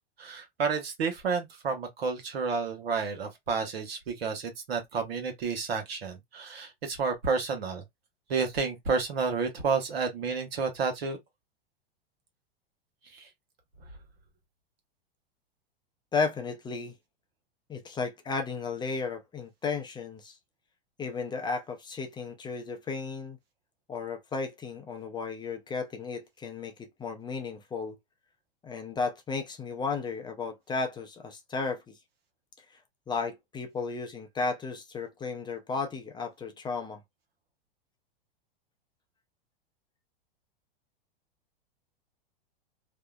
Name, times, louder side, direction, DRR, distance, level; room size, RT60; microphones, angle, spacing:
voice 1, 0.2-7.8 8.3-11.2 13.1-13.3, right 5 dB, 85° right, 1.1 m, -30 dB
voice 2, 16.1-16.9 17.7-20.4 21.0-23.4 23.9-28.0 28.6-31.9 32.6-32.8 33.1-37.0, left 4 dB, 15° left, 0.5 m, -34 dB
2.7 x 2.0 x 2.3 m
hypercardioid pair, 115°, 30 cm